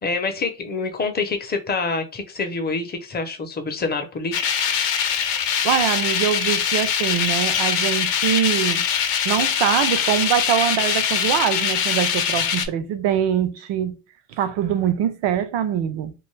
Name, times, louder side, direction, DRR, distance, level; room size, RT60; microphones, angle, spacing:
voice 1, 0.0-4.5, left 4 dB, 25° left, 0.5 m, -26 dB
sound 1, 4.3-12.7, left 8 dB, 70° left, 0.6 m, -22 dB
voice 2, 5.6-8.9 9.2-14.0 14.4-16.1, right 9 dB, 75° right, 0.6 m, -23 dB
2.5 x 2.3 x 3.1 m
cardioid pair, 120°, 44 cm